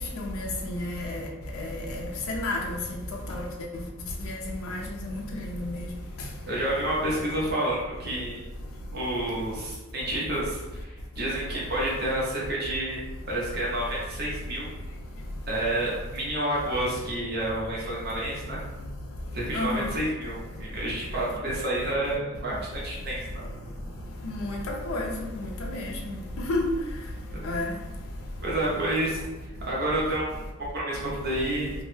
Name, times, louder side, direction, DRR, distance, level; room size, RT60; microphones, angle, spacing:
voice 1, 0.2-1.2 1.5-2.8 3.3-3.5 4.2-5.8 19.5-19.9 24.2-25.1 25.6-26.7 27.4-27.7, left 2 dB, 80° left, 0 dB, 0.4 m, -31 dB
voice 2, 6.5-8.4 8.9-13.0 13.3-14.7 15.5-18.6 19.3-23.4 27.3-27.5 28.4-29.2 29.7-31.7, right 1 dB, 50° right, -5 dB, 0.6 m, -29 dB
2.1 x 2.0 x 3.0 m, 1.1 s
head